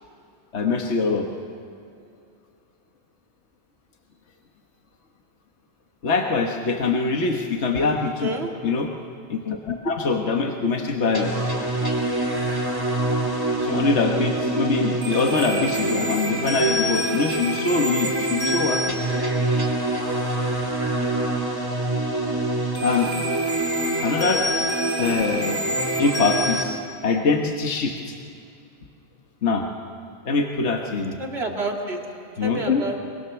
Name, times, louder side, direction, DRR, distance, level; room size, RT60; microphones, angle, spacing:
voice 1, 0.5-1.3 6.0-8.3 8.6-8.9 9.3-11.3 13.6-19.0 22.8-23.1 24.0-24.5 25.0-25.7 26.0-28.1 29.4-29.6 30.2-31.2 32.4-32.8, left 4 dB, 70° left, 2 dB, 1.6 m, -23 dB
voice 2, 8.0-8.5 31.2-32.0 32.4-33.0, right 2 dB, 60° right, 1 dB, 2.6 m, -29 dB
sound 1, 11.1-26.6, right 1 dB, 20° right, 2.7 m, -25 dB
23.5 x 22.5 x 7.0 m, 2.5 s
omnidirectional pair, 1.2 m